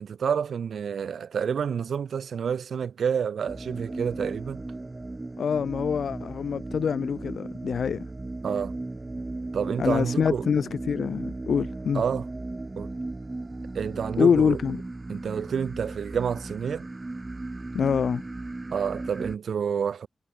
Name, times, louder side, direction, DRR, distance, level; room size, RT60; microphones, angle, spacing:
voice 1, 0.0-4.6 8.4-8.8 9.5-10.4 11.9-12.3 12.8-12.9 13.7-14.6 15.1-16.9 18.7-20.1, right 7 dB, 85° right, 3.2 m, -29 dB
sound 1, 3.5-19.4, right 2 dB, 25° right, 0.9 m, -36 dB
voice 2, 5.4-8.0 9.8-12.0 14.2-14.8 17.7-18.2, left 7 dB, 80° left, 2.0 m, -25 dB
wide cardioid pair, 85°, 0 cm